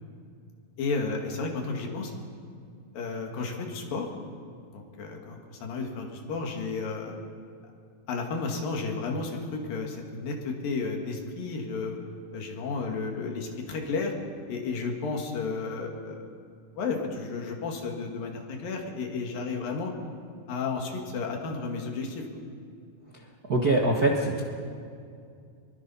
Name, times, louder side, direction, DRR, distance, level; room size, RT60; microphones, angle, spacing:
voice 1, 0.8-2.1 2.9-4.1 4.7-7.2 8.1-12.0 12.3-14.1 14.5-16.2 16.8-19.9 20.5-22.2, left 4 dB, 75° left, 2 dB, 3.8 m, -32 dB
voice 2, 23.5-24.4, right 2 dB, 50° right, -1 dB, 1.1 m, -23 dB
25.0 x 22.5 x 5.7 m, 2.3 s
omnidirectional pair, 4.1 m